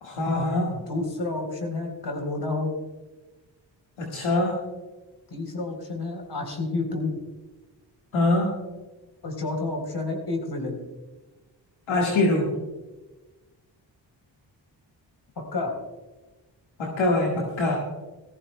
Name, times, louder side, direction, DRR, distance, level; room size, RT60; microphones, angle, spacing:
voice 1, 0.0-0.7 4.0-4.6 8.1-8.5 11.9-12.5 16.8-17.8, left 2 dB, 90° left, -2 dB, 1.8 m, -23 dB
voice 2, 0.7-2.7 5.3-7.1 9.2-10.8 15.5-15.7, left 2 dB, 60° left, 3 dB, 3.7 m, -30 dB
19.0 x 14.5 x 2.2 m, 1.2 s
supercardioid pair, 45°, 46 cm